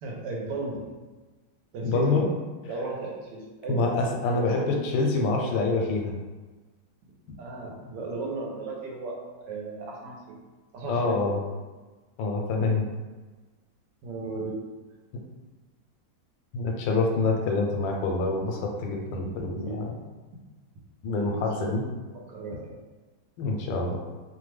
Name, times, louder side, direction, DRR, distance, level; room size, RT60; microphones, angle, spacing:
voice 1, 0.0-0.8 1.7-2.2 2.7-3.9 4.3-4.7 7.4-10.4 10.7-11.4 14.0-14.6 19.3-19.8 21.1-21.7 22.1-22.7, right 3 dB, 80° right, -2 dB, 1.3 m, -35 dB
voice 2, 1.8-2.2 3.7-6.1 10.9-11.4 12.2-12.9 16.5-20.0 21.0-21.8 23.4-24.0, left 3 dB, 85° left, 1 dB, 1.3 m, -26 dB
3.1 x 2.2 x 3.2 m, 1.3 s
omnidirectional pair, 2.0 m